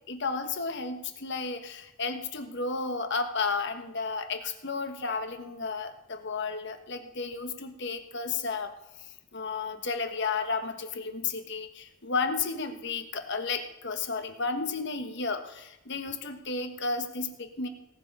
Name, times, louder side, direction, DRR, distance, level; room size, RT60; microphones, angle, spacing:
voice 1, 0.1-8.7 9.0-17.7, left 4 dB, 60° left, 7 dB, 1.4 m, -33 dB
18.5 x 7.4 x 5.5 m, 0.91 s
head